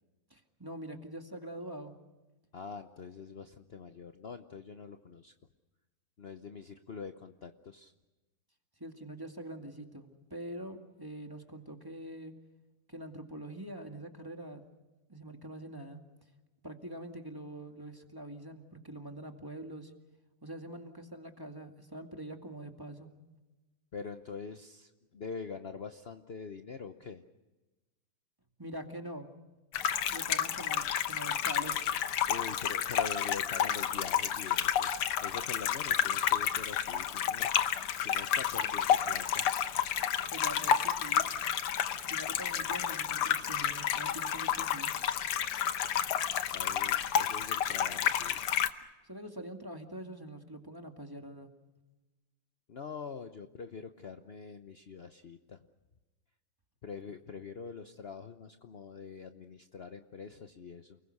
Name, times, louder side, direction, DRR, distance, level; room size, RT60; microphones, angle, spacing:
voice 1, 0.3-1.9 8.8-12.3 12.9-14.6 15.1-16.0 16.6-19.9 20.4-23.1 28.6-29.3 30.1-31.8 40.3-41.3 42.0-44.9 49.0-51.5, right 1 dB, 10° right, 4 dB, 2.0 m, -44 dB
voice 2, 2.5-5.3 6.2-7.9 23.9-27.2 32.3-34.9 35.2-37.5 38.0-39.5 46.5-48.4 52.7-55.6 56.8-61.0, left 5 dB, 60° left, 7 dB, 0.6 m, -44 dB
sound 1, 29.7-48.7, left 9 dB, 85° left, 2.0 m, -30 dB
29.5 x 21.5 x 6.5 m, 1.1 s
omnidirectional pair, 2.4 m